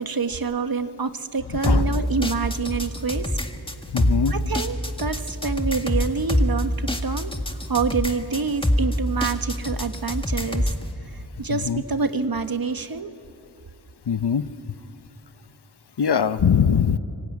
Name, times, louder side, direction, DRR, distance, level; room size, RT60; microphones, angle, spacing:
voice 1, 0.0-3.4 4.3-7.4 7.7-10.7 11.1-13.1, right 4 dB, 60° right, 9 dB, 1.4 m, -27 dB
voice 2, 1.6-2.0 3.9-4.3 11.5-11.8 14.1-14.5 16.0-17.0, left 7 dB, 75° left, 12 dB, 1.0 m, -21 dB
sound 1, 1.6-10.9, equal, 15° left, 1.9 m, -25 dB
25.5 x 24.5 x 9.6 m, 2.6 s
wide cardioid pair, 65°, 40 cm